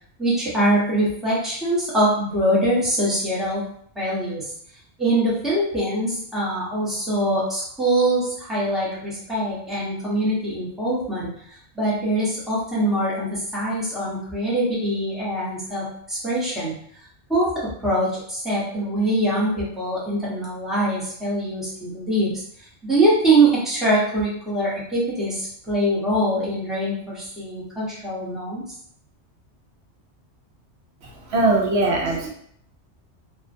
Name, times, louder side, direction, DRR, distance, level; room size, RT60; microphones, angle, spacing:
voice 1, 0.2-3.6 3.9-4.5 5.0-16.7 17.3-22.3 22.8-28.6, right 1 dB, ahead, -8 dB, 0.7 m, -23 dB
voice 2, 31.0-32.3, right 2 dB, 75° right, 0 dB, 0.8 m, -21 dB
2.5 x 2.1 x 2.5 m, 0.65 s
omnidirectional pair, 1.2 m